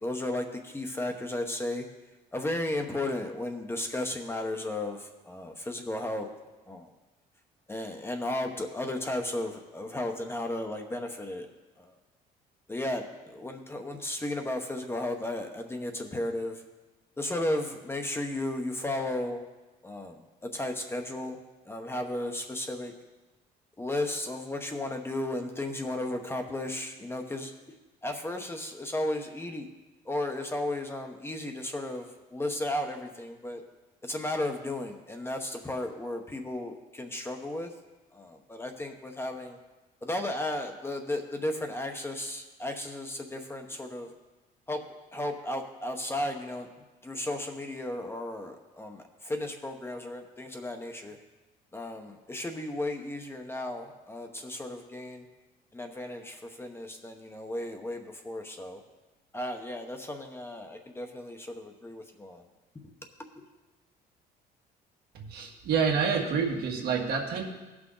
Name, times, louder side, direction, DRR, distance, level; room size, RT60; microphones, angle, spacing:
voice 1, 0.0-1.8 2.3-6.3 6.7-6.9 7.7-11.5 11.8-12.0 12.7-16.6 17.2-19.4 19.8-20.2 20.5-21.4 21.6-22.9 23.8-27.5 28.0-29.7 30.0-33.6 34.0-37.7 38.1-39.6 40.0-44.1 44.7-44.8 45.1-46.7 47.0-51.2 51.7-55.3 55.7-58.8 59.3-62.4 62.8-62.9 63.4-63.5, left 1 dB, 15° left, 4 dB, 1.0 m, -34 dB
voice 2, 65.1-67.4, right 6 dB, 65° right, 1 dB, 1.7 m, -28 dB
16.5 x 6.1 x 3.9 m, 1.2 s
cardioid pair, 110°, 17 cm